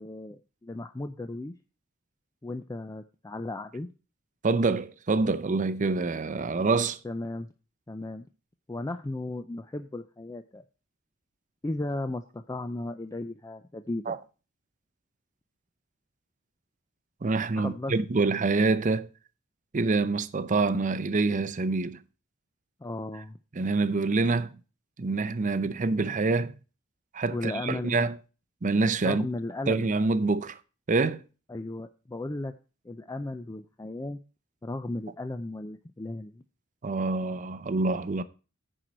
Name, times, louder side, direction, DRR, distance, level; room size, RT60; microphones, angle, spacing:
voice 1, 0.0-1.5 2.4-3.9 7.0-7.5 7.9-8.3 8.7-10.6 11.6-14.2 17.6-17.9 22.8-23.4 27.3-28.1 29.0-30.0 31.5-32.5 32.8-34.2 34.6-36.4, left 2 dB, 15° left, 0.4 m, -35 dB
voice 2, 4.4-7.0 14.1-14.2 17.2-19.1 19.7-22.0 23.6-24.6 25.0-26.5 27.1-28.1 28.6-29.3 29.7-30.6 30.9-31.2 36.8-38.2, right 3 dB, 35° right, 0.6 m, -26 dB
10.0 x 4.6 x 6.3 m
head